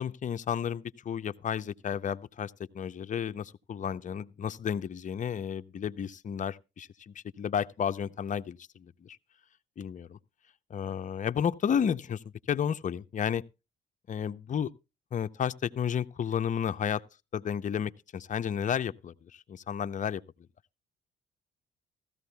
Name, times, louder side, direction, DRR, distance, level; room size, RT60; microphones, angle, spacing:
voice 1, 0.0-9.2 9.8-10.2 10.7-13.4 14.1-14.7 15.1-17.0 17.3-20.2, left 8 dB, 40° left, 0.6 m, -32 dB
16.0 x 14.0 x 2.2 m
cardioid pair, 90°, 20 cm